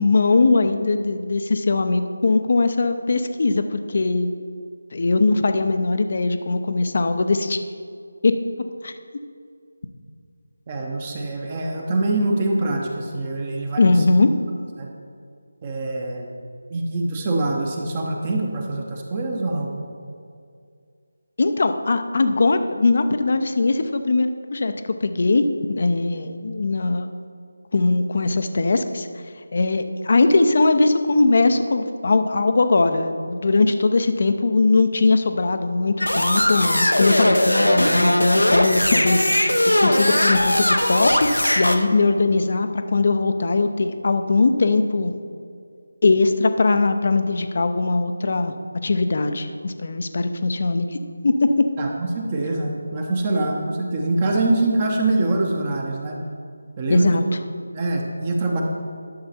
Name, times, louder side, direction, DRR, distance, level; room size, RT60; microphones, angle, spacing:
voice 1, 0.0-4.4 4.9-7.6 8.2-8.3 8.8-8.9 13.8-14.3 21.4-24.7 25.0-27.1 27.7-29.1 29.5-39.5 39.8-45.2 46.0-48.5 48.8-51.0 51.2-51.6 56.9-57.2, left 3 dB, 45° left, 8 dB, 0.7 m, -20 dB
voice 2, 10.7-14.0 14.8-14.9 15.6-16.3 16.7-19.7 51.8-56.2 56.8-57.2 57.7-58.6, right 2 dB, 25° right, 1 dB, 1.0 m, -24 dB
sound 1, 36.0-41.8, left 1 dB, 90° left, 0.9 m, -19 dB
11.5 x 6.8 x 4.3 m, 2.3 s
figure-of-eight pair, 160°, 0 cm